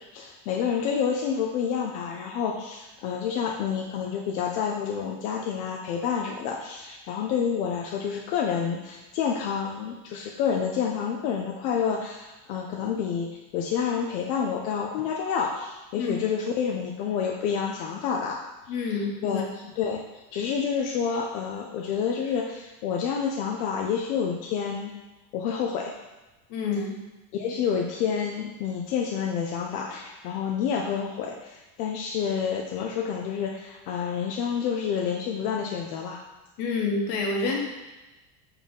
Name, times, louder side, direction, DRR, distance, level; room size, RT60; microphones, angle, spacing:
voice 1, 0.1-18.4 19.2-19.4 19.8-20.0 20.3-24.9 25.3-25.9 27.3-36.2 37.5-37.6, left 7 dB, 85° left, 0 dB, 0.9 m, -28 dB
voice 2, 18.7-19.4 26.5-27.0 36.6-37.7, left 4 dB, 60° left, 0 dB, 1.4 m, -28 dB
4.6 x 3.8 x 5.4 m, 1.1 s
cardioid pair, 150°, 45 cm